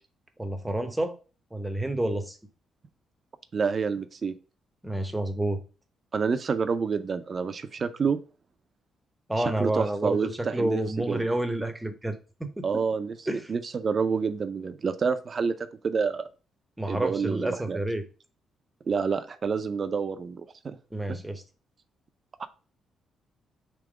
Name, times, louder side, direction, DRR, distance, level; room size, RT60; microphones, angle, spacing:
voice 1, 0.4-1.2 1.5-2.4 4.8-5.6 9.3-12.2 12.6-12.8 13.3-13.5 16.8-18.1 20.9-21.4, right 1 dB, 10° right, 0.7 m, -29 dB
voice 2, 3.5-4.3 6.1-8.2 9.4-11.2 12.6-13.2 13.5-15.5 15.8-16.2 16.8-17.8 18.9-20.8 21.1-21.2 22.4-22.5, right 5 dB, 40° right, 0.5 m, -28 dB
3.6 x 2.9 x 4.8 m
cardioid pair, 100°, 0 cm